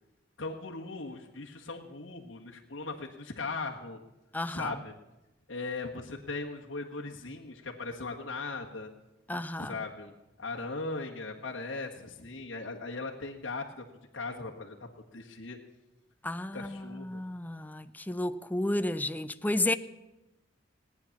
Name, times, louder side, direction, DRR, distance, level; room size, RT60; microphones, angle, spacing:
voice 1, 0.4-4.0 4.5-4.9 5.5-8.9 9.6-10.1 10.4-13.8 14.1-15.6 16.5-17.2, left 3 dB, 85° left, 1.6 m, -38 dB
voice 2, 4.3-4.8 9.3-9.7 16.2-19.7, left 1 dB, 10° left, 0.5 m, -32 dB
18.5 x 9.7 x 7.2 m
head